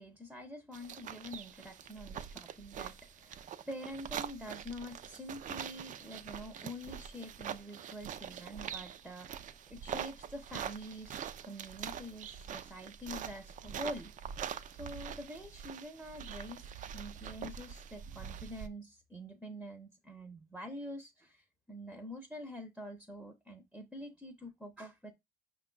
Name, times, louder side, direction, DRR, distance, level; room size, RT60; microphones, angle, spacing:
voice 1, 0.0-14.1 14.8-25.1, equal, 5° right, 0.7 m, -46 dB
sound 1, 0.7-18.7, right 8 dB, 50° right, 0.4 m, -44 dB
5.5 x 2.3 x 3.8 m
cardioid pair, 110°, 17 cm